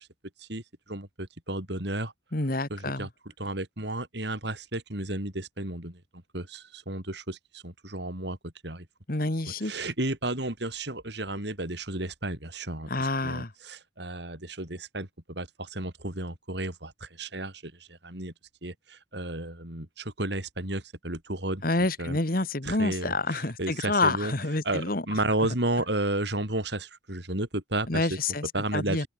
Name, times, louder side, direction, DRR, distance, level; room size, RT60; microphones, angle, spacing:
voice 1, 0.9-2.1 2.7-3.1 3.4-6.0 6.3-8.4 8.6-8.9 9.6-12.9 13.2-17.7 18.0-18.3 18.6-21.6 22.0-22.2 22.6-24.3 24.6-28.1 28.5-29.1, right 2 dB, 60° right, 3.9 m, -32 dB
voice 2, 2.3-3.1 9.1-9.7 12.9-13.5 21.6-25.0 27.9-29.1, left 2 dB, 50° left, 1.8 m, -28 dB
open air
head